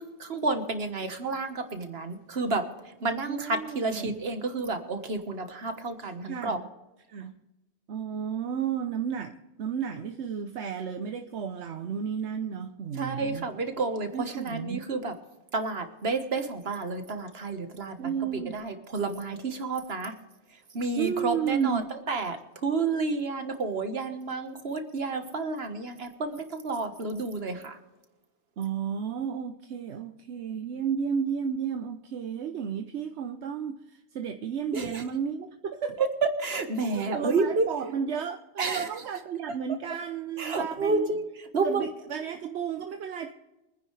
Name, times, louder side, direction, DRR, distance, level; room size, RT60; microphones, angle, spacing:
voice 1, 0.0-2.6 3.0-6.6 13.0-15.1 15.5-18.1 18.5-20.1 20.7-21.8 22.1-27.8 34.7-35.0 36.0-36.1 36.4-37.7 38.6-38.9 40.4-41.3 41.5-41.8, right 3 dB, 65° right, 7 dB, 1.6 m, -30 dB
voice 2, 3.3-4.1 6.2-6.6 7.1-7.4 7.9-13.4 14.1-14.8 18.0-18.6 20.9-21.8 28.6-36.1 36.8-41.1 41.6-43.3, right 7 dB, 80° right, 7 dB, 1.1 m, -32 dB
25.0 x 10.0 x 3.3 m, 0.99 s
omnidirectional pair, 1.1 m